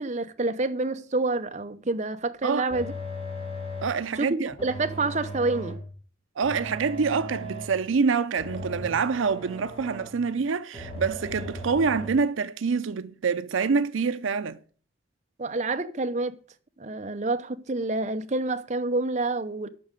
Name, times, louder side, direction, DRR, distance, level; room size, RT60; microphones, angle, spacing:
voice 1, 0.0-2.9 4.2-5.8 15.4-16.4 16.8-19.7, right 2 dB, 35° right, 0.7 m, -28 dB
sound 1, 2.7-4.0 4.6-5.9 6.4-7.9 8.4-10.3 10.7-12.1, equal, 30° left, 2.9 m, -37 dB
voice 2, 3.8-4.5 6.4-14.6, right 5 dB, 80° right, 0.5 m, -26 dB
8.7 x 6.4 x 8.1 m
head